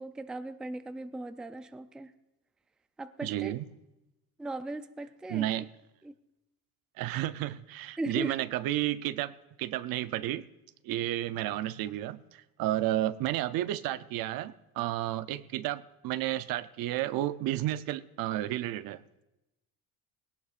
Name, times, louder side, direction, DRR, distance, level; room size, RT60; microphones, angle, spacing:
voice 1, 0.0-2.1 3.0-3.5 4.4-5.4 6.0-6.1 8.0-8.3, right 2 dB, ahead, 0.4 m, -38 dB
voice 2, 3.2-3.7 5.3-5.7 7.0-9.3 9.6-10.5 10.8-19.0, right 14 dB, 70° right, 0.6 m, -32 dB
20.0 x 17.5 x 2.5 m
cardioid pair, 140°, 37 cm